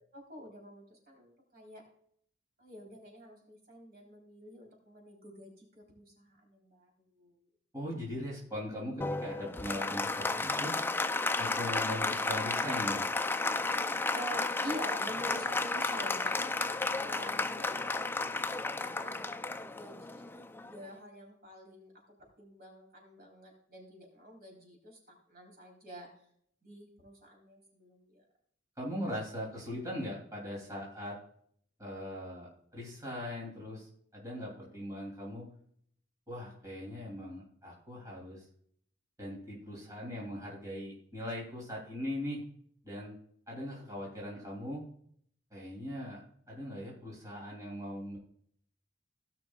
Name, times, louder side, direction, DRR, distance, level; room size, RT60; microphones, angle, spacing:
voice 1, 0.1-1.8 2.6-7.5 14.1-16.7 17.0-18.3 18.7-19.3 19.6-21.9 22.2-26.1 26.6-28.2, equal, 50° right, 0 dB, 3.7 m, -47 dB
voice 2, 7.7-10.8 11.4-13.1 28.8-31.2 31.8-35.5 36.3-38.4 39.2-42.4 42.8-43.2 43.5-44.8 45.5-46.2 46.5-48.2, left 1 dB, 15° right, -4 dB, 2.9 m, -40 dB
Applause, 9.0-20.9, left 3 dB, 10° left, 0.4 m, -33 dB
17.5 x 6.0 x 2.3 m, 0.65 s
head